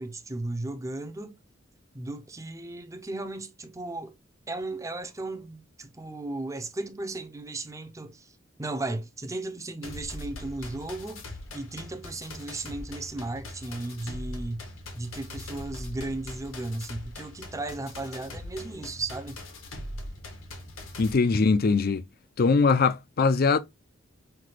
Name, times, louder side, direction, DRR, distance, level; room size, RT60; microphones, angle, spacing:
voice 1, 0.0-1.4 1.9-4.1 4.5-14.7 14.9-19.4, right 2 dB, 15° right, 0.6 m, -35 dB
sound 1, 9.8-21.1, left 1 dB, 90° left, 1.3 m, -41 dB
voice 2, 21.0-22.1 22.4-23.6, left 4 dB, 50° left, 0.5 m, -22 dB
5.8 x 2.3 x 3.2 m
head